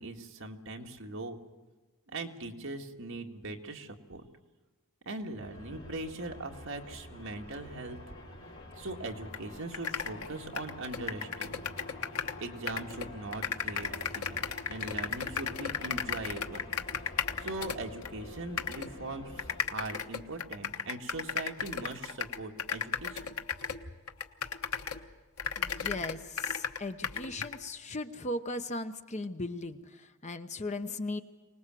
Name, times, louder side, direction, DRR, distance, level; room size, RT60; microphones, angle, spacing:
voice 1, 0.0-1.4 2.1-4.2 5.1-8.0 8.8-11.8 12.4-16.6 17.4-23.3, right 2 dB, 60° right, 2 dB, 2.0 m, -40 dB
sound 1, 5.4-19.6, left 1 dB, 65° left, 5.0 m, -48 dB
sound 2, 9.3-9.4 9.7-12.4 12.7-18.1 18.6-18.9 19.4-25.1 25.4-27.6, left 7 dB, 85° left, 1.2 m, -35 dB
voice 2, 25.6-31.2, left 2 dB, 30° left, 8 dB, 0.9 m, -37 dB
25.0 x 19.5 x 7.7 m, 1.3 s
head